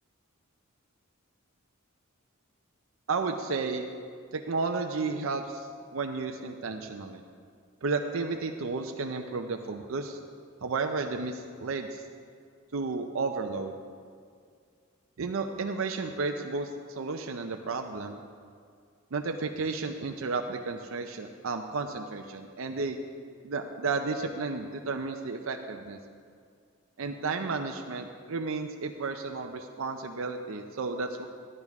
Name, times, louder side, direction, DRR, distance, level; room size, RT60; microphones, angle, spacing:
voice 1, 3.1-3.9 4.3-7.2 7.8-10.2 10.6-12.1 12.7-13.8 15.2-18.2 19.1-23.0 23.4-26.0 27.0-31.3, right 4 dB, 70° right, 4 dB, 0.5 m, -32 dB
12.0 x 12.0 x 3.6 m, 2.2 s
head